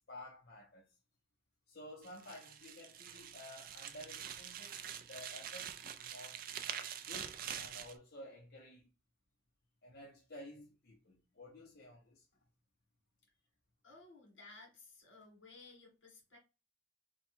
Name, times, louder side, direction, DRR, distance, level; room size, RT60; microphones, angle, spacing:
voice 1, 0.1-0.9 1.7-4.8 5.1-6.4 7.1-8.9 9.8-12.2, left 1 dB, 55° left, 0.9 m, -53 dB
sound 1, 2.0-8.0, right 9 dB, 45° right, 0.3 m, -45 dB
voice 2, 13.8-16.4, left 3 dB, 75° left, 1.9 m, -57 dB
3.2 x 2.2 x 4.3 m
head